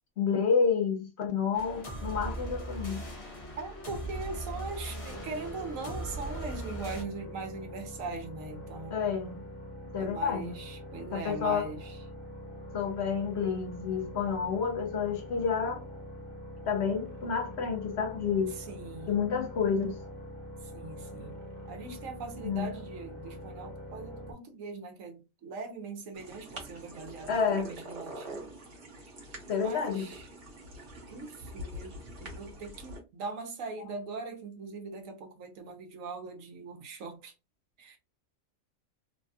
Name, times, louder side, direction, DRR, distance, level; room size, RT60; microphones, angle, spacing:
voice 1, 0.2-3.0 8.9-9.4 9.9-10.5 11.1-11.7 12.7-15.8 16.6-18.5 19.1-20.0 22.4-22.7 27.3-27.7 29.5-30.1, left 6 dB, 60° left, 0.8 m, -29 dB
sound 1, 1.5-7.0, right 1 dB, 30° left, 0.8 m, -39 dB
voice 2, 3.6-9.0 10.0-12.0 18.5-19.3 20.6-21.4 21.7-28.5 29.6-30.3 31.1-37.3 37.8-38.0, right 4 dB, 75° right, 1.1 m, -41 dB
sound 2, 5.1-24.3, equal, 10° left, 1.1 m, -44 dB
sound 3, 26.1-33.0, right 1 dB, 45° right, 1.1 m, -45 dB
3.3 x 2.2 x 2.6 m
omnidirectional pair, 1.4 m